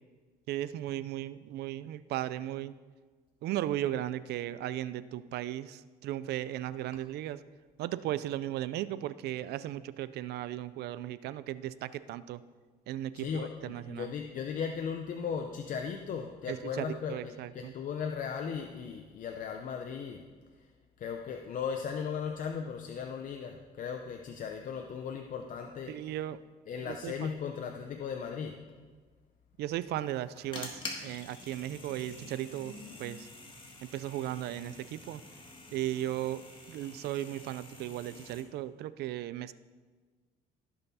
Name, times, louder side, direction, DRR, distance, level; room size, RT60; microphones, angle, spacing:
voice 1, 0.5-2.7 3.4-7.4 7.8-12.4 12.9-14.1 16.5-17.7 25.9-26.4 26.9-27.3 29.6-33.3 33.8-35.2 35.7-39.5, right 13 dB, 75° right, 15 dB, 0.5 m, -36 dB
voice 2, 13.1-20.2 20.6-20.7 21.0-26.1 26.7-28.6, left 6 dB, 50° left, 3 dB, 0.7 m, -37 dB
sound 1, 30.0-38.4, left 2 dB, 30° left, 1.9 m, -47 dB
16.0 x 5.6 x 4.2 m, 1.4 s
cardioid pair, 110°, 17 cm